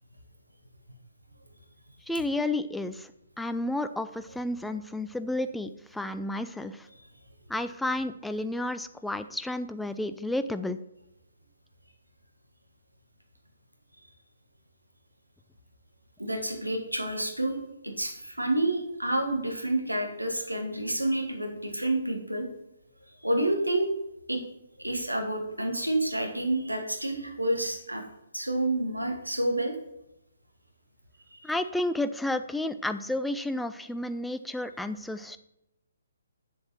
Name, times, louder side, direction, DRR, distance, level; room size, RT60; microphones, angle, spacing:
voice 1, 2.1-3.1 3.4-6.9 7.5-10.8 31.4-35.4, left 1 dB, 5° left, 10 dB, 0.4 m, -31 dB
voice 2, 16.2-17.6 17.8-22.5 23.2-23.9 24.3-24.4 24.8-28.0 28.3-29.7 31.3-31.5, right 1 dB, 85° right, 4 dB, 1.7 m, -29 dB
7.8 x 7.2 x 4.4 m, 0.88 s
figure-of-eight pair, 130°, 0 cm